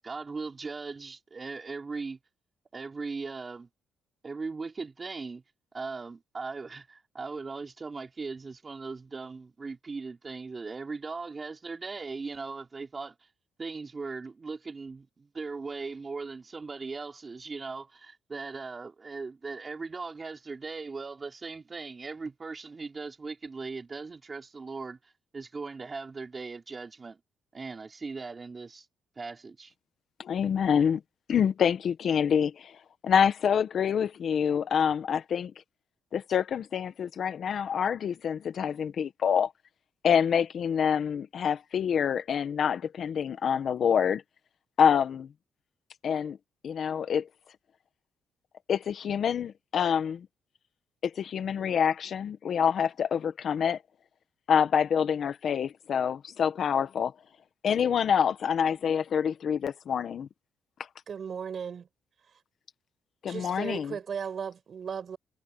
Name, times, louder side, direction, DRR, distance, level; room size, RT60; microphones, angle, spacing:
voice 1, 0.0-2.2 2.7-3.7 4.2-5.4 5.7-13.2 13.6-27.2 27.5-28.9 29.2-29.7, right 4 dB, 30° right, 3.6 m, -39 dB
voice 2, 30.2-31.0 31.3-32.7 33.0-35.5 36.1-39.5 40.0-44.2 44.8-45.3 46.0-46.4 46.6-47.3 48.7-50.3 51.0-53.8 54.5-57.1 57.6-60.3 63.2-63.9, left 7 dB, 60° left, 1.6 m, -26 dB
voice 3, 61.1-61.9 63.3-65.2, right 7 dB, 50° right, 6.1 m, -36 dB
cardioid pair, 90°, 0 cm